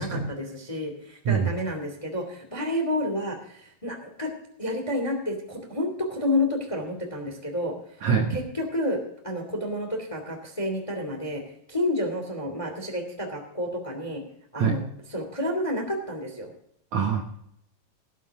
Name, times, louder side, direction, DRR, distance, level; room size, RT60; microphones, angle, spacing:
voice 1, 0.0-4.3 4.6-7.7 8.3-9.0 9.2-11.4 11.7-14.2 14.5-14.8 15.1-16.5, left 1 dB, 10° left, 3 dB, 1.7 m, -30 dB
voice 2, 16.9-17.2, right 6 dB, 65° right, 2 dB, 1.9 m, -24 dB
18.0 x 10.0 x 3.6 m, 0.72 s
omnidirectional pair, 4.5 m